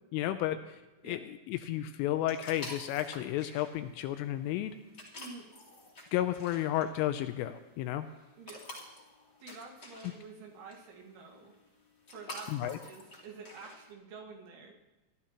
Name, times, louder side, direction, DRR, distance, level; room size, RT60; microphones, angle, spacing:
voice 1, 0.1-0.8 1.0-4.8 6.1-8.1 12.5-12.8, left 13 dB, 85° left, 9 dB, 3.0 m, -32 dB
sound 1, 2.3-13.9, left 2 dB, 40° left, 1.5 m, -50 dB
voice 2, 5.2-5.5 8.4-8.6 9.4-11.5 12.1-14.8, right 4 dB, 70° right, 0 dB, 4.0 m, -48 dB
27.0 x 12.0 x 2.9 m, 1.1 s
omnidirectional pair, 6.0 m